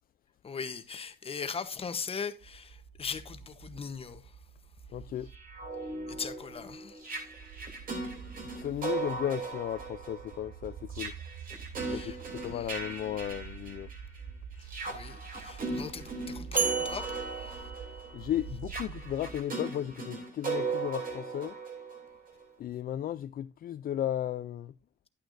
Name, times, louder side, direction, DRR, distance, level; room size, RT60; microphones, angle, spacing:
voice 1, 0.4-4.3 6.1-7.2 11.8-12.2 12.5-12.8 14.6-17.7, left 5 dB, 35° left, 1.0 m, -40 dB
sound 1, 2.4-19.4, right 7 dB, 70° right, 0.9 m, -48 dB
voice 2, 4.9-5.3 8.5-11.1 11.9-13.9 18.1-21.6 22.6-24.7, left 11 dB, 55° left, 0.4 m, -35 dB
sound 2, 5.3-14.2 14.6-22.4, right 4 dB, 55° right, 3.3 m, -38 dB
sound 3, 16.6-18.6, right 4 dB, 10° right, 0.6 m, -35 dB
11.5 x 9.0 x 2.6 m
cardioid pair, 125°, 18 cm